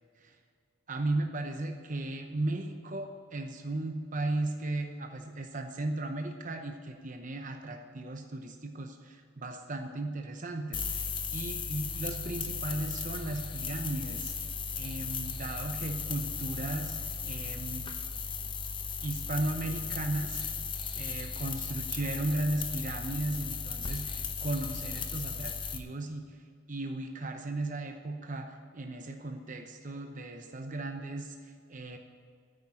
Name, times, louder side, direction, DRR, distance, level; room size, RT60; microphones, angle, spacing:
voice 1, 0.9-14.3 14.8-17.0 17.2-18.0 19.0-20.5 20.9-26.4 26.7-32.0, right 2 dB, 35° right, 4 dB, 0.8 m, -36 dB
sound 1, 10.7-25.8, left 5 dB, 25° left, 0.7 m, -36 dB
9.6 x 9.1 x 9.2 m, 2.2 s
head